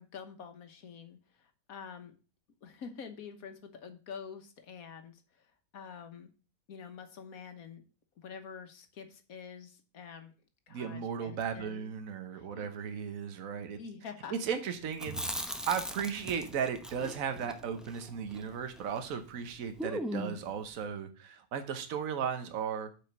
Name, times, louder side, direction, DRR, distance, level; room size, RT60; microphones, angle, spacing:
voice 1, 0.0-2.2 2.6-6.3 6.7-7.8 8.2-10.3 10.7-11.9 12.3-12.7 13.8-14.3, left 6 dB, 70° left, 7 dB, 1.6 m, -47 dB
voice 2, 10.7-13.8 14.3-22.9, right 7 dB, 65° right, 8 dB, 1.4 m, -36 dB
Chewing mastication, 14.9-19.1 19.4-19.5 19.8-20.5, equal, ahead, 0.4 m, -39 dB
7.5 x 5.0 x 6.5 m, 0.35 s
omnidirectional pair, 1.6 m